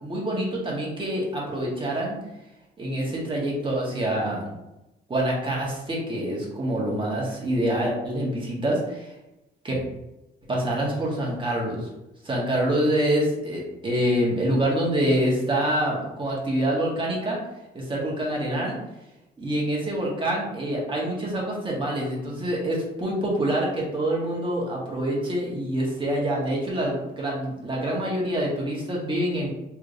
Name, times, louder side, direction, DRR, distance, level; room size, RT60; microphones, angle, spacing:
voice 1, 0.0-2.1 2.8-4.5 5.1-9.1 9.6-9.8 10.5-11.9 12.2-17.4 17.7-18.8 19.4-29.5, right 1 dB, 25° right, -4 dB, 1.5 m, -26 dB
3.5 x 3.2 x 2.6 m, 0.95 s
cardioid pair, 90°, 20 cm